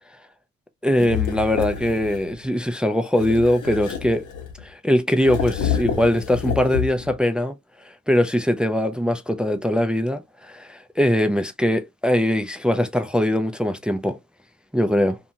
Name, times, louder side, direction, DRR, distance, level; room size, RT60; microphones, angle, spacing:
voice 1, 0.8-4.2 4.6-7.5 8.1-14.2 14.7-15.2, left 1 dB, 5° right, 0.3 m, -21 dB
sound 1, 1.0-2.3 3.1-4.7 5.2-7.2, left 8 dB, 70° left, 1.0 m, -28 dB
2.6 x 2.3 x 2.7 m
cardioid pair, 90°, 30 cm